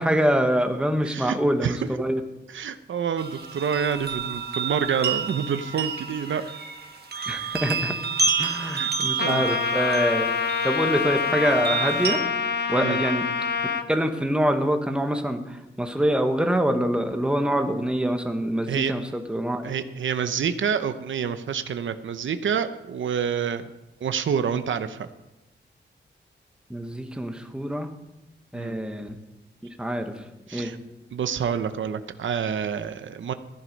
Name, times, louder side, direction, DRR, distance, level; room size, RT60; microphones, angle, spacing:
voice 1, 0.0-2.2 7.3-8.0 8.4-10.3 10.6-12.2 12.7-13.3 13.9-19.7 26.7-27.9 28.5-29.2 29.8-30.7, equal, 5° right, 5 dB, 1.1 m, -25 dB
voice 2, 2.5-6.4 8.6-8.9 9.2-9.4 12.8-13.0 18.7-18.9 19.6-23.7 24.0-25.1 28.5-28.8 30.5-30.8 31.1-33.3, right 7 dB, 90° right, 10 dB, 0.8 m, -27 dB
sound 1, 3.2-12.2, right 5 dB, 55° right, 1.5 m, -29 dB
Trumpet, 9.2-13.9, left 6 dB, 60° left, 0.9 m, -26 dB
14.5 x 11.0 x 5.3 m, 0.98 s
wide cardioid pair, 165°, 19 cm